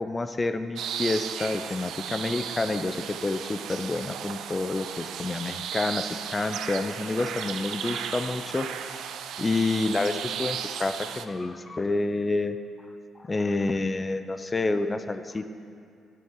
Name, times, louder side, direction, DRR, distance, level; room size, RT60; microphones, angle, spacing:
voice 1, 0.0-8.9 9.4-12.6 13.2-15.5, left 3 dB, 30° left, 9 dB, 0.5 m, -28 dB
sound 1, 0.8-11.2, right 8 dB, 75° right, 0.4 m, -35 dB
10.5 x 7.7 x 3.8 m, 2.4 s
hypercardioid pair, 55°, 0 cm